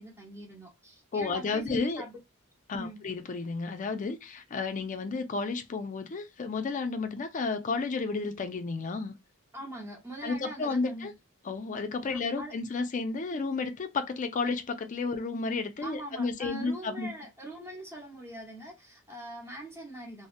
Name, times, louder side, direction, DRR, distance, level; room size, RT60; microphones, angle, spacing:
voice 1, 0.0-2.2 2.7-3.0 9.5-11.1 12.1-12.5 15.8-20.3, right 1 dB, 15° right, 0.9 m, -43 dB
voice 2, 1.1-2.0 2.7-9.1 10.2-11.1 11.4-17.1, left 4 dB, 40° left, 0.4 m, -32 dB
2.7 x 2.0 x 2.4 m
head